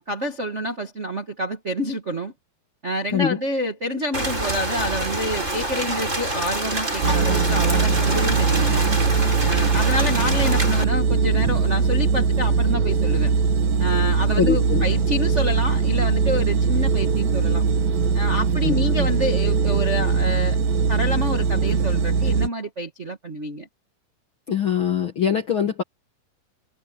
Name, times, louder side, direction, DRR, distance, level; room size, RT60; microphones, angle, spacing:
voice 1, 0.0-2.3 2.8-8.8 9.4-13.3 13.8-17.6 18.1-20.6 20.9-23.7, equal, 85° right, 0.6 m, -28 dB
Rain, 4.1-10.8, right 1 dB, 15° right, 7.7 m, -26 dB
sound 1, 7.0-22.5, right 5 dB, 65° right, 3.6 m, -21 dB
voice 2, 14.3-14.8 18.6-19.1 24.5-25.8, left 8 dB, 75° left, 1.1 m, -23 dB
omnidirectional pair, 4.5 m